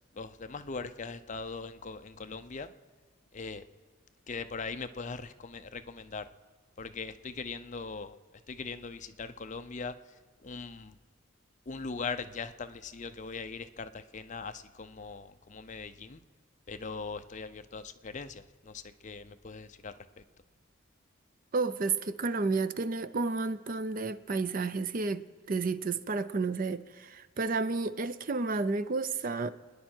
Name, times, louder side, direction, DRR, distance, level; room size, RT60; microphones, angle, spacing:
voice 1, 0.1-2.7 3.3-3.6 4.3-6.2 6.8-8.2 8.5-9.9 10.4-11.0 11.7-16.2 16.7-19.9, left 4 dB, 35° left, 0.6 m, -40 dB
voice 2, 21.5-29.5, right 3 dB, 40° right, 0.5 m, -31 dB
28.0 x 10.5 x 4.5 m
head